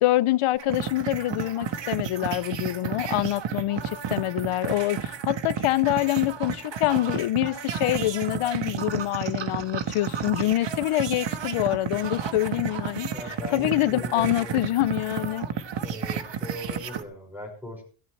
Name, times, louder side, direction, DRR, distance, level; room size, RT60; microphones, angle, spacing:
voice 1, 0.0-13.1 13.5-15.5, left 15 dB, 85° left, 0.6 m, -25 dB
sound 1, 0.5-17.0, right 7 dB, 60° right, 1.4 m, -32 dB
voice 2, 13.1-14.6 15.8-17.8, left 1 dB, 5° right, 5.6 m, -39 dB
17.0 x 15.5 x 3.2 m
wide cardioid pair, 145°, 49 cm